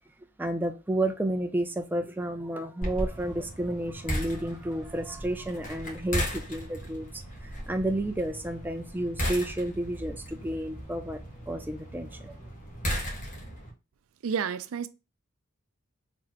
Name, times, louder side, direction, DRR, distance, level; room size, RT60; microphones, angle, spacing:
voice 1, 0.4-7.1 7.4-11.2 11.5-12.4, right 1 dB, 10° right, 0.4 m, -31 dB
sound 1, 2.8-13.7, equal, 40° left, 1.4 m, -36 dB
voice 2, 14.2-14.9, right 6 dB, 75° right, 0.4 m, -30 dB
4.0 x 3.2 x 2.9 m
head